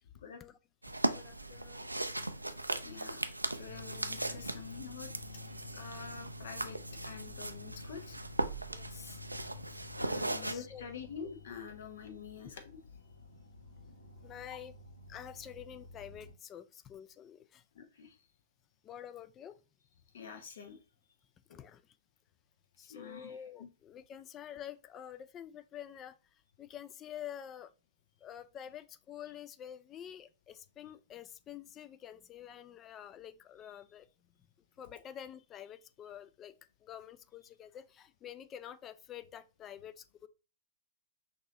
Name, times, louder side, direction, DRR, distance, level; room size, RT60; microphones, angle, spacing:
voice 1, 0.3-0.6 1.1-1.9 8.7-9.2 10.4-10.9 14.2-14.7 15.1-17.6 18.8-19.6 21.5-21.8 22.8-26.2 26.6-27.7 28.2-34.1 34.8-36.5 36.8-40.3, left 10 dB, 25° left, 0.4 m, -48 dB
sound 1, 0.8-10.5, right 2 dB, 90° right, 0.4 m, -38 dB
voice 2, 2.8-5.1 5.6-8.2 10.0-12.6 17.7-18.2 20.1-20.8 21.5-21.6 22.9-23.7, left 6 dB, 60° left, 1.0 m, -47 dB
sound 2, 3.7-16.3, left 4 dB, 80° left, 1.5 m, -52 dB
5.9 x 2.7 x 2.9 m
figure-of-eight pair, 105°, 0 cm